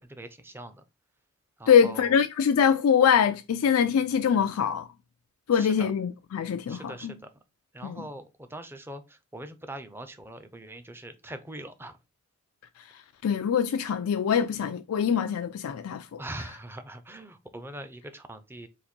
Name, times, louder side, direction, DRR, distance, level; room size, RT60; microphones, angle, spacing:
voice 1, 0.1-0.8 1.6-2.1 5.5-5.9 6.7-7.2 7.7-12.0 16.2-18.7, right 1 dB, 10° right, 0.5 m, -42 dB
voice 2, 1.7-4.9 5.5-7.2 7.8-8.0 13.2-16.2, left 7 dB, 85° left, 0.4 m, -23 dB
4.0 x 2.6 x 4.3 m
head